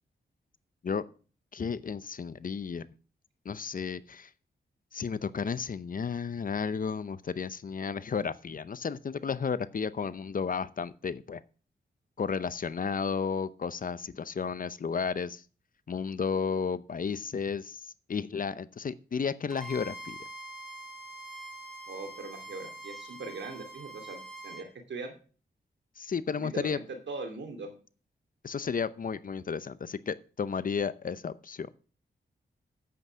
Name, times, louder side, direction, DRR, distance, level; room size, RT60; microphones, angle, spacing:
voice 1, 1.5-2.9 3.4-4.3 4.9-11.4 12.2-15.4 15.9-17.8 18.1-20.2 26.0-26.8 28.4-31.7, left 6 dB, 50° left, 16 dB, 0.7 m, -33 dB
Bowed string instrument, 19.5-24.7, right 1 dB, ahead, 2.7 m, -44 dB
voice 2, 21.9-25.1 26.4-27.7, right 3 dB, 80° right, 6 dB, 2.7 m, -41 dB
9.1 x 8.3 x 6.3 m, 0.38 s
cardioid pair, 75°, 18 cm